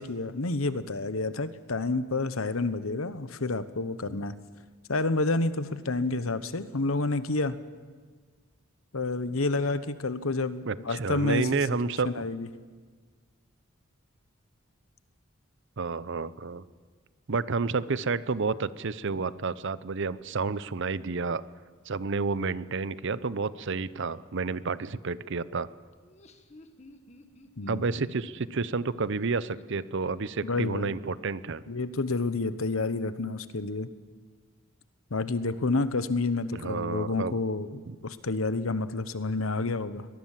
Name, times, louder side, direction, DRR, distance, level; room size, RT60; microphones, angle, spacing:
voice 1, 0.0-4.3 4.9-7.6 8.9-12.5 27.6-27.8 30.4-31.0 31.7-33.9 35.1-40.1, left 3 dB, 90° left, 13 dB, 1.1 m, -29 dB
voice 2, 10.7-12.1 15.8-16.6 17.3-21.4 21.9-25.7 27.7-31.6 36.5-37.4 37.9-38.0, right 4 dB, 60° right, 17 dB, 0.7 m, -30 dB
Laughter, 25.9-30.5, left 1 dB, 35° left, 1.7 m, -54 dB
23.0 x 20.0 x 7.5 m, 1.5 s
head